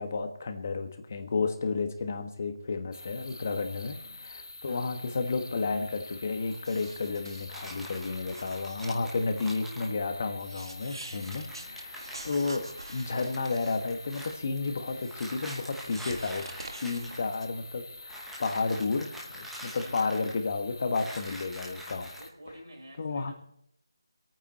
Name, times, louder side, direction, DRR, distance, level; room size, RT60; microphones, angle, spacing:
voice 1, 0.0-4.0 4.2-16.5 16.8-22.1 23.0-23.3, left 4 dB, 35° left, 7 dB, 1.3 m, -32 dB
sound 1, 2.9-22.3, left 2 dB, 85° left, 1.1 m, -46 dB
voice 2, 3.7-4.2 4.7-5.2 11.4-11.8 22.1-23.3, equal, 60° right, -5 dB, 4.9 m, -51 dB
sound 2, 6.5-9.6 10.0-10.1 10.4-15.3 15.8-17.5, right 2 dB, 80° right, 1.9 m, -46 dB
sound 3, 7.5-9.9 10.8-10.9 11.1-14.3 15.1-17.3 18.1-20.5 20.9-22.3, equal, ahead, 1.0 m, -45 dB
25.0 x 9.1 x 4.2 m, 0.70 s
figure-of-eight pair, 170°, 2 cm